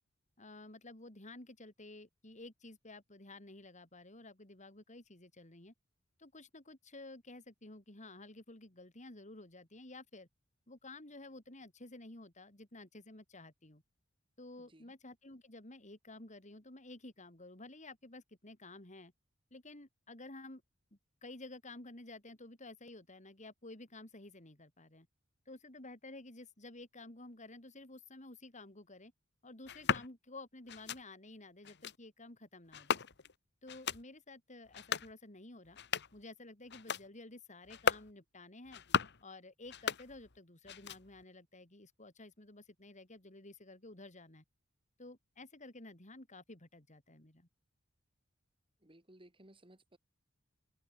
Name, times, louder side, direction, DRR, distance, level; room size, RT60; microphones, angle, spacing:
voice 1, 0.4-5.7 6.2-10.3 10.7-13.8 14.4-19.1 19.5-20.6 20.9-25.1 25.5-29.1 29.4-33.1 33.6-35.8 36.1-38.8 39.2-44.4 45.0-47.5, left 2 dB, 35° left, 4.0 m, -52 dB
voice 2, 14.6-14.9 48.8-50.0, right 1 dB, 25° right, 4.6 m, -60 dB
sound 1, 29.6-30.1 30.7-31.0 31.6-32.0 32.7-33.3 33.7-34.0 34.6-35.1 35.6-36.2 36.7-37.1 37.6-38.1 38.6-39.2 39.6-40.4 40.6-41.2, left 6 dB, 55° left, 1.5 m, -36 dB
head